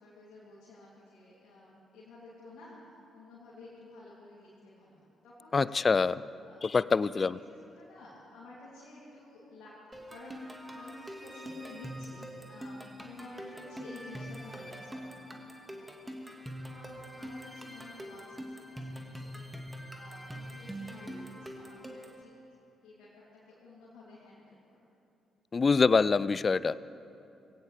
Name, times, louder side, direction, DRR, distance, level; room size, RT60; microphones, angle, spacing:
voice 1, 0.0-5.9 6.5-15.2 15.8-16.2 16.7-19.5 19.9-22.3 22.8-24.8, left 2 dB, 60° left, -9 dB, 3.1 m, -52 dB
voice 2, 5.5-6.2 6.6-7.4 25.5-26.8, left 4 dB, 35° left, 18 dB, 0.4 m, -25 dB
sound 1, 9.9-22.2, equal, 10° right, 1.9 m, -44 dB
22.0 x 17.5 x 3.5 m, 2.8 s
figure-of-eight pair, 40°, 0 cm